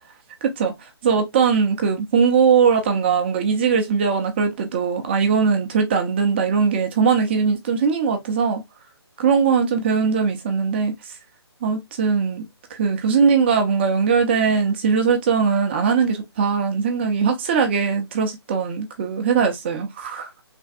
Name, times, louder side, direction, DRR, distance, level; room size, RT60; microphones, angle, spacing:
voice 1, 0.4-0.7 1.0-8.6 9.2-10.9 11.6-12.5 12.7-20.3, right 6 dB, 25° right, 0.5 m, -20 dB
3.3 x 2.2 x 2.6 m
figure-of-eight pair, 150°, 14 cm